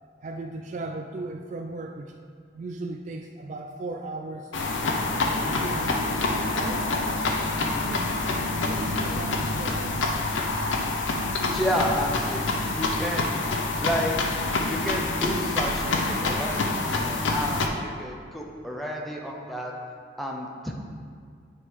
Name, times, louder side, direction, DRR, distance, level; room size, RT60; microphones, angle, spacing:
voice 1, 0.2-2.2 2.5-4.5 5.2-5.9 6.5-6.9 7.8-10.1, right 2 dB, 40° right, 3 dB, 0.3 m, -36 dB
sound 1, 4.5-17.7, left 2 dB, 85° left, 0.7 m, -27 dB
voice 2, 5.1-5.4 11.4-12.5 12.7-13.3 13.8-14.3 14.7-19.7 20.2-20.7, equal, ahead, -1 dB, 0.6 m, -31 dB
9.6 x 3.7 x 4.7 m, 2.1 s
head